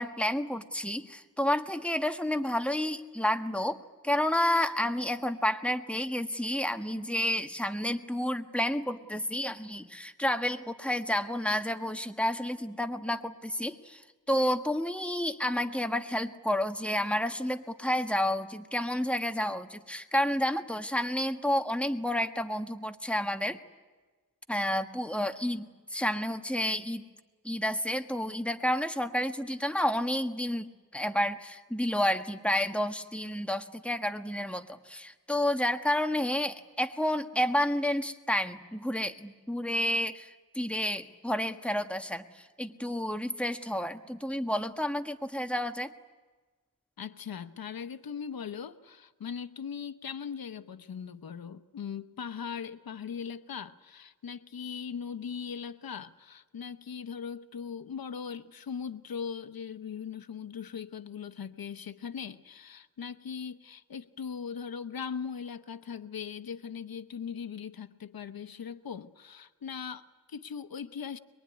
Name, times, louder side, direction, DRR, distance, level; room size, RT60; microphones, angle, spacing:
voice 1, 0.0-3.8 4.0-23.6 24.5-27.0 27.4-45.9, left 1 dB, 5° left, 6 dB, 1.5 m, -30 dB
voice 2, 47.0-71.2, left 7 dB, 90° left, 12 dB, 0.9 m, -39 dB
23.5 x 23.0 x 9.7 m, 1.3 s
cardioid pair, 60°, 35 cm